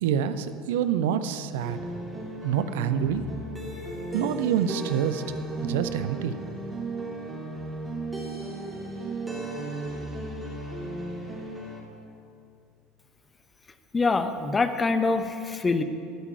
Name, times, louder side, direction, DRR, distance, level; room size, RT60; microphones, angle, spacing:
voice 1, 0.0-1.8 2.4-3.3 4.1-5.2 5.6-6.4, right 9 dB, 65° right, 11 dB, 0.5 m, -26 dB
sound 1, 1.6-11.8, right 2 dB, 15° right, 2.7 m, -35 dB
voice 2, 13.9-15.8, left 3 dB, 20° left, 9 dB, 0.9 m, -24 dB
13.5 x 5.9 x 9.1 m, 2.4 s
figure-of-eight pair, 70°, 0 cm